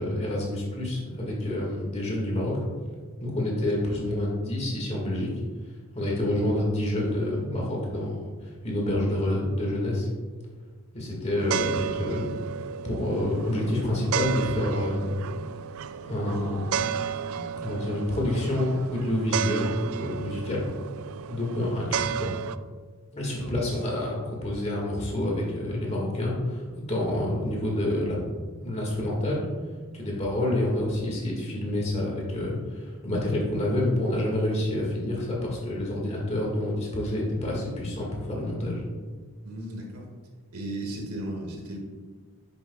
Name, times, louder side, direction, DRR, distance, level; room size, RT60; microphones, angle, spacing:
voice 1, 0.0-2.6 3.2-5.3 5.9-8.1 8.4-10.1 10.9-12.4 12.8-15.2 16.0-16.8 17.3-20.6 21.3-22.3 23.1-26.6 26.9-28.2 28.6-29.5 29.9-38.8, left 1 dB, 30° left, -2 dB, 1.8 m, -28 dB
sound 1, 11.4-22.6, right 8 dB, 70° right, 0.3 m, -33 dB
voice 2, 39.4-40.0 40.5-41.8, right 1 dB, 90° right, 0 dB, 1.7 m, -35 dB
10.0 x 6.7 x 2.3 m, 1.5 s
head